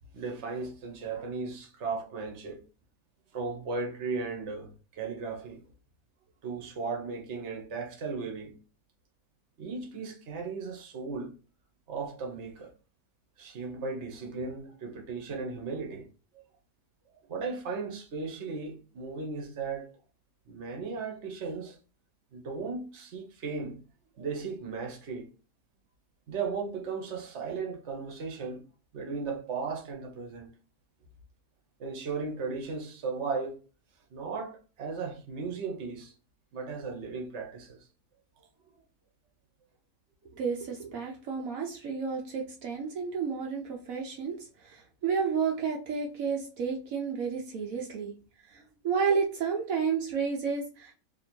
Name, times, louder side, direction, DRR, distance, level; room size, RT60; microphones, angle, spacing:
voice 1, 0.1-2.6 3.3-5.6 6.4-8.5 9.6-11.3 11.9-12.7 13.4-16.0 16.3-16.4 17.1-19.9 20.5-21.8 22.3-23.8 24.2-25.3 26.3-28.6 28.9-30.5 31.8-33.6 34.1-36.1 36.5-37.9, right 4 dB, 55° right, 1.2 m, -36 dB
voice 2, 40.3-44.4 44.6-48.1 48.5-50.9, right 6 dB, 75° right, 1.1 m, -31 dB
2.9 x 2.8 x 4.4 m
omnidirectional pair, 1.5 m